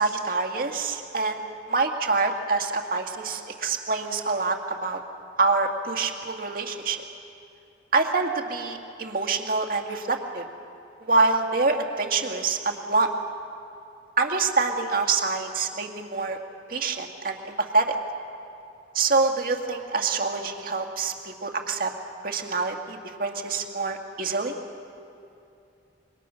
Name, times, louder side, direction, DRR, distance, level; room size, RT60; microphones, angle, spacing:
voice 1, 0.0-1.4 1.7-5.0 5.4-7.0 7.9-10.5 11.1-13.1 14.2-16.4 16.7-18.0 18.9-21.9 22.2-24.5, right 4 dB, 55° right, 4 dB, 2.0 m, -26 dB
27.0 x 23.0 x 6.4 m, 2.7 s
head